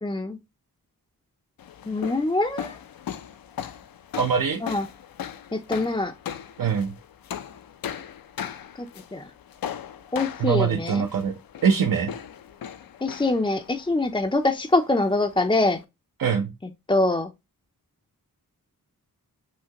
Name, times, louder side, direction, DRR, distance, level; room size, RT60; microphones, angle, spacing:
voice 1, 0.0-0.4 1.9-2.8 4.6-4.9 5.5-6.1 8.8-8.9 9.1-9.3 10.1-11.0 13.0-15.8 16.9-17.3, left 2 dB, 15° left, 0.5 m, -24 dB
sound 1, 1.6-15.8, left 9 dB, 75° left, 0.5 m, -39 dB
voice 2, 4.2-4.6 6.6-6.9 10.4-12.1 16.2-16.5, right 6 dB, 65° right, 0.7 m, -23 dB
5.7 x 2.8 x 2.9 m
wide cardioid pair, 95°, 36 cm